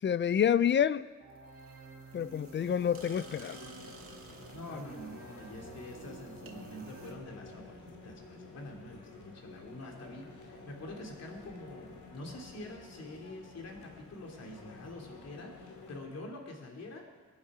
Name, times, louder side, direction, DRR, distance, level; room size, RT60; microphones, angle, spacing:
voice 1, 0.0-1.1 2.1-3.6, left 8 dB, 40° left, 0.4 m, -28 dB
sound 1, 1.2-7.1, right 3 dB, 50° right, 2.1 m, -50 dB
sound 2, 2.6-16.0, left 2 dB, 75° left, 2.8 m, -51 dB
voice 2, 4.5-17.1, left 1 dB, 60° left, 2.9 m, -46 dB
22.0 x 9.5 x 4.9 m
cardioid pair, 110°, 30 cm